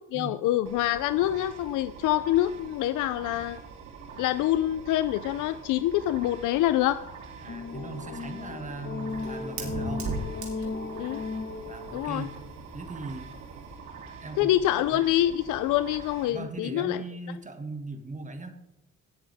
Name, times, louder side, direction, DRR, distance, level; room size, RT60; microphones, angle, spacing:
voice 1, 0.1-3.6 4.2-7.0 10.6-11.2 11.9-12.3 14.4-17.0, left 13 dB, 85° left, 13 dB, 0.5 m, -26 dB
sound 1, 0.7-16.3, right 5 dB, 90° right, 2.1 m, -45 dB
voice 2, 7.4-10.1 11.7-12.3 12.7-13.3 14.2-14.5 14.9-15.1 16.3-18.6, right 3 dB, 25° right, 7 dB, 1.9 m, -39 dB
sound 2, 7.5-12.6, left 4 dB, 35° left, 1.2 m, -36 dB
Fire, 8.2-13.8, right 3 dB, 70° right, 3.4 m, -40 dB
18.5 x 7.2 x 3.5 m, 0.92 s
cardioid pair, 90°, 30 cm